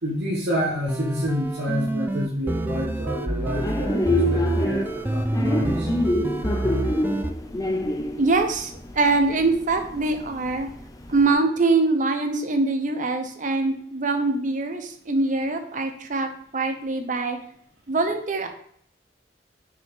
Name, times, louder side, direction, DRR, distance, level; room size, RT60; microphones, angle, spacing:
voice 1, 0.0-5.9, equal, 70° right, -5 dB, 1.5 m, -28 dB
sound 1, 0.6-7.3, right 1 dB, 10° right, 0.3 m, -27 dB
sound 2, 3.5-11.3, left 1 dB, 20° left, 0.6 m, -27 dB
voice 2, 8.2-10.7 11.1-17.4 17.9-18.5, right 3 dB, 45° right, 6 dB, 0.9 m, -23 dB
6.4 x 5.2 x 3.6 m, 0.65 s
head